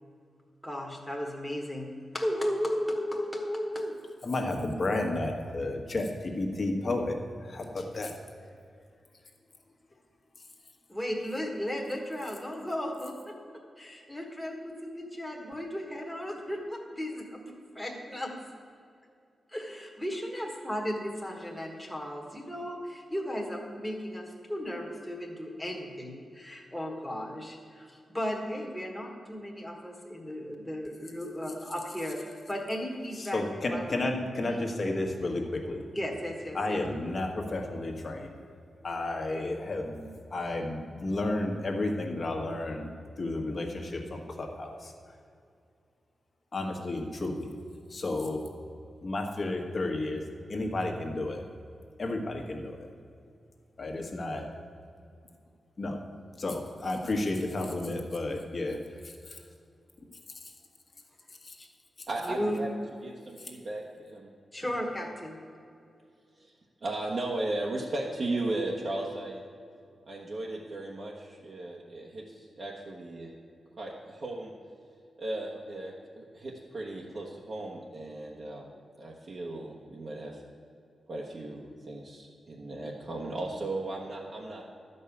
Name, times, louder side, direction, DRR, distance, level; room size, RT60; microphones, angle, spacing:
voice 1, 0.6-3.9 10.9-13.3 13.8-18.3 19.5-34.1 34.4-34.6 35.9-36.8 61.6-61.7 62.2-62.6 64.5-65.4, equal, 5° left, 0 dB, 1.5 m, -35 dB
voice 2, 4.2-7.2 7.4-8.1 33.3-35.8 36.5-38.3 38.8-42.9 43.2-44.9 46.5-47.5 47.9-48.4 49.0-50.2 50.5-51.4 52.0-52.9 53.8-54.4 55.8-56.0 56.4-58.8, left 2 dB, 40° left, 3 dB, 1.5 m, -32 dB
voice 3, 62.1-62.7 63.0-64.3 66.4-66.5 66.8-69.4 70.1-73.3 73.8-74.5 75.2-78.7 79.0-80.4 81.1-84.6, right 2 dB, 45° right, -3 dB, 1.2 m, -36 dB
12.0 x 5.5 x 8.4 m, 2.4 s
wide cardioid pair, 135°, 0 cm